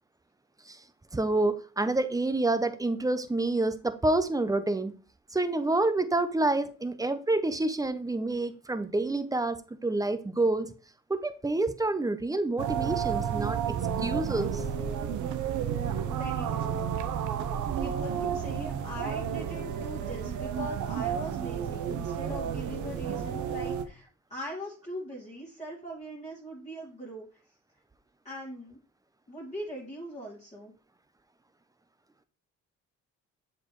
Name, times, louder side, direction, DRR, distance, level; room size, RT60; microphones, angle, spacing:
voice 1, 1.1-4.9 5.3-10.7 11.1-14.6, right 2 dB, 10° right, 11 dB, 0.6 m, -28 dB
sound 1, 12.6-23.8, right 8 dB, 75° right, 0.7 m, -31 dB
voice 2, 16.1-16.8 17.7-27.3 28.2-28.8 29.3-30.7, equal, 25° left, -5 dB, 1.9 m, -41 dB
7.4 x 4.5 x 3.1 m, 0.37 s
cardioid pair, 90°, 30 cm